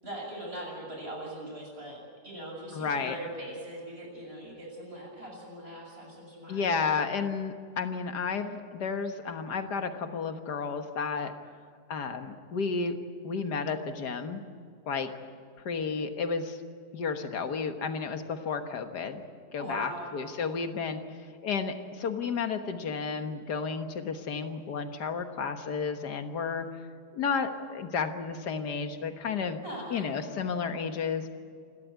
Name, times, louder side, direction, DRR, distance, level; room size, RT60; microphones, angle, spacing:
voice 1, 0.0-2.0 2.2-6.8 19.6-20.1 29.6-30.1, right 1 dB, 35° right, -1 dB, 7.3 m, -40 dB
voice 2, 2.7-3.2 6.5-11.3 11.9-13.0 13.2-14.4 14.8-15.1 15.6-16.6 16.9-19.2 19.5-26.8 27.1-29.6 29.9-31.3, left 5 dB, 90° left, 7 dB, 2.0 m, -32 dB
28.0 x 13.0 x 9.4 m, 2.1 s
omnidirectional pair, 1.7 m